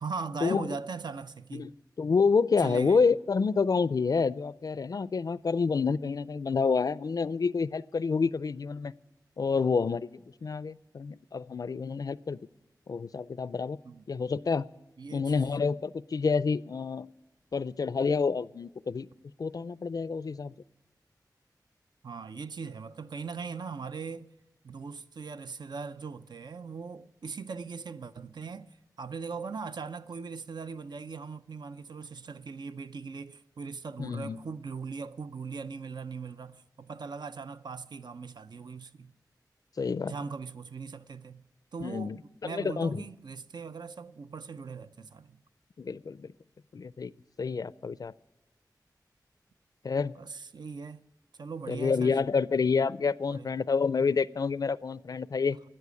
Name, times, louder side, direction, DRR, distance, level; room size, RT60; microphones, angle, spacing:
voice 1, 0.0-1.7 2.6-3.0 13.8-14.0 15.0-15.3 22.0-24.3 24.6-28.7 29.0-39.1 40.1-41.4 41.7-45.4 50.1-51.0 51.4-52.2 53.3-53.5, right 5 dB, 80° right, 0.5 m, -40 dB
voice 2, 2.0-8.9 9.4-12.4 12.9-13.8 14.1-14.7 15.1-17.1 17.5-19.1 19.4-20.5 34.0-34.4 39.8-40.1 41.8-43.0 45.8-46.3 46.7-47.1 47.4-48.1 49.8-50.1 51.7-55.6, left 5 dB, 60° left, 0.4 m, -28 dB
13.0 x 9.3 x 8.3 m
wide cardioid pair, 95°, 7 cm